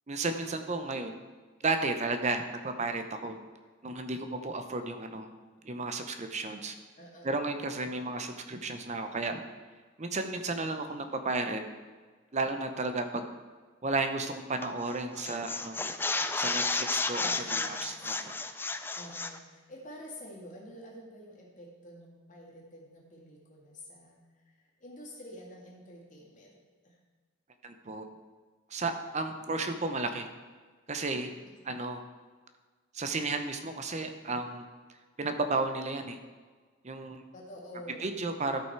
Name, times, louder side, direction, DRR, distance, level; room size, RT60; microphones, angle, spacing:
voice 1, 0.1-1.2 1.6-3.4 3.8-5.3 5.6-6.7 7.2-9.4 10.0-11.6 12.3-13.2 13.8-15.8 16.4-17.3 17.7-18.3 27.6-28.1 28.7-30.3 30.9-31.3 31.7-32.0 32.9-34.7 35.2-36.2 36.8-37.2 38.0-38.6, right 3 dB, 35° right, 7 dB, 0.7 m, -33 dB
voice 2, 7.0-7.3 17.1-17.7 18.9-24.2 24.5-26.6 26.8-27.0 37.3-38.1, equal, 40° left, -2 dB, 2.1 m, -48 dB
sound 1, 14.6-14.9 15.2-19.4, left 3 dB, 10° left, 0.3 m, -32 dB
12.5 x 5.7 x 4.6 m, 1.5 s
head